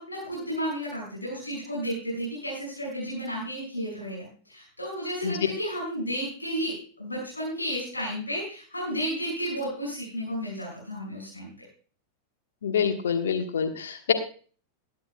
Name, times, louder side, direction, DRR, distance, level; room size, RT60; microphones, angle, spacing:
voice 1, 0.0-11.5, equal, 80° left, -5 dB, 6.1 m, -32 dB
voice 2, 12.6-14.1, left 7 dB, 65° left, 5 dB, 1.4 m, -26 dB
21.0 x 10.5 x 2.3 m, 0.41 s
figure-of-eight pair, 90°, 0 cm